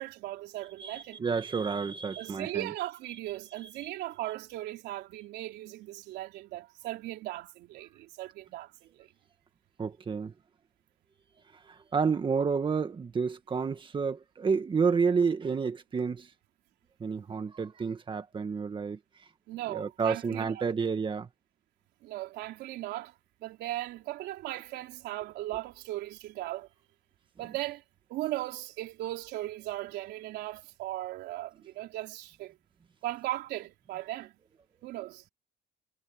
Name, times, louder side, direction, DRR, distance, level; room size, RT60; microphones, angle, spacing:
voice 1, 0.0-1.3 2.2-9.1 19.5-20.7 22.0-23.1 23.4-26.7 27.4-27.8 28.1-32.6 33.0-34.4 34.8-35.2, right 16 dB, 85° right, 3.6 m, -38 dB
voice 2, 0.8-2.7 3.8-3.9 9.8-10.3 11.7-16.3 17.0-19.0 19.7-21.3, right 5 dB, 30° right, 1.7 m, -30 dB
cardioid pair, 110°, 17 cm